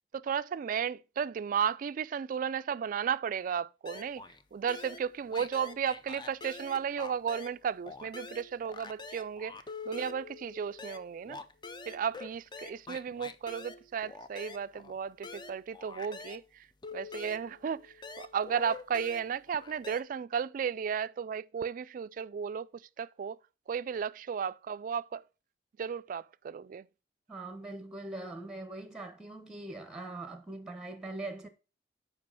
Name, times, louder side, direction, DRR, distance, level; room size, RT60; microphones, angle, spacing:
voice 1, 0.1-4.2 4.5-9.6 9.9-11.4 11.9-16.7 16.9-23.4 23.7-25.2 25.8-26.9, right 7 dB, 50° right, 0.3 m, -34 dB
sound 1, 3.9-4.4 4.7-7.6 7.9-16.5 16.8-20.0, left 4 dB, 25° left, 0.5 m, -46 dB
voice 2, 27.3-31.5, right 2 dB, 5° right, 0.9 m, -42 dB
7.5 x 5.1 x 5.6 m
head